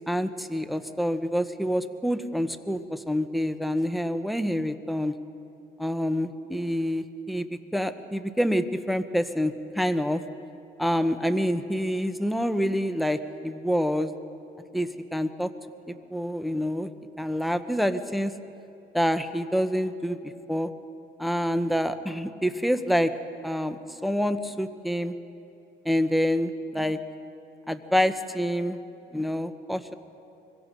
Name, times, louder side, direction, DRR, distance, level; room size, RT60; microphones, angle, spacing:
voice 1, 0.0-5.1 5.8-10.2 10.8-14.1 14.7-15.5 15.9-16.9 17.2-18.3 18.9-20.7 21.2-23.1 23.4-25.1 25.8-27.0 27.7-28.8 29.1-29.9, equal, ahead, 8 dB, 1.1 m, -27 dB
24.5 x 23.0 x 5.3 m, 2.7 s
cardioid pair, 90°, 20 cm